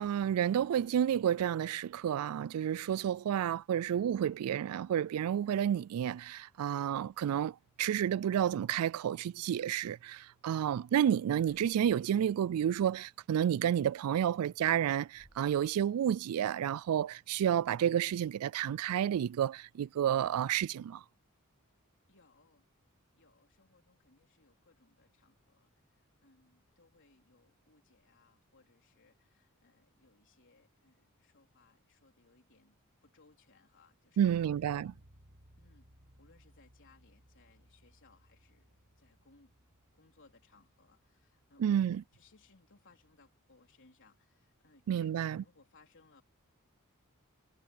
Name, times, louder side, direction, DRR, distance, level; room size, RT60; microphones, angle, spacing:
voice 1, 0.0-21.0 34.2-34.9 41.6-42.0 44.9-45.4, right 9 dB, 80° right, 0.3 m, -30 dB
sound 1, 10.3-10.5 11.4-12.9 13.3-13.5 13.9-16.0, left 1 dB, 40° left, 8.0 m, -69 dB
voice 2, 22.1-22.7 23.2-34.9 35.6-39.5 39.9-46.2, left 3 dB, 60° left, 4.0 m, -66 dB
Bass guitar, 34.2-43.9, equal, 55° right, 5.2 m, -64 dB
head